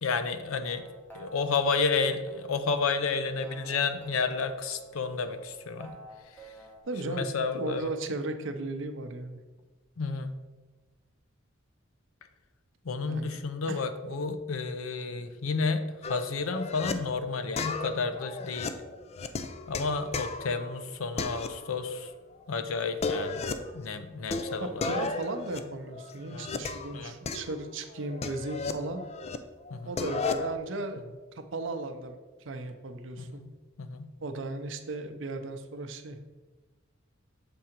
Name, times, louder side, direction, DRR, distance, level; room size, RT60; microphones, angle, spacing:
voice 1, 0.0-0.9 1.1-6.0 6.3-6.6 7.0-7.9 10.0-10.3 12.8-18.7 19.7-22.1 22.5-23.5 23.7-24.9 26.3-26.5 26.9-27.1 29.7-30.0 33.2-33.5 33.8-34.1, left 4 dB, 90° left, 10 dB, 0.6 m, -31 dB
sound 1, 0.7-6.8, right 3 dB, 10° left, 0.9 m, -49 dB
voice 2, 6.8-7.3 7.5-9.4 13.0-13.4 13.7-13.9 24.6-29.0 29.8-31.0 31.3-33.4 34.2-36.2, right 2 dB, 60° right, 7 dB, 0.6 m, -36 dB
sound 2, 16.0-16.9 17.6-20.8 21.2-22.1 22.3-22.4 22.8-23.8 24.3-26.9 27.3-29.4 29.7-30.5, left 4 dB, 30° left, 0.3 m, -34 dB
6.9 x 3.7 x 4.4 m, 1.3 s
head